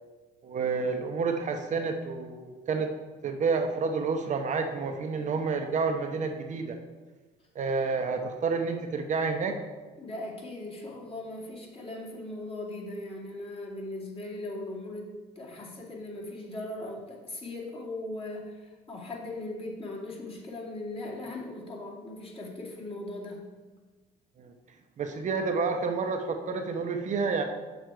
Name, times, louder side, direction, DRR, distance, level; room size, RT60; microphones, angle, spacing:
voice 1, 0.4-2.9 3.2-6.8 7.5-9.6 24.4-24.5 25.0-27.4, right 4 dB, 45° right, 4 dB, 0.8 m, -29 dB
voice 2, 10.0-23.4, left 2 dB, 35° left, -3 dB, 2.4 m, -39 dB
7.2 x 6.5 x 4.7 m, 1.3 s
cardioid pair, 110°, 17 cm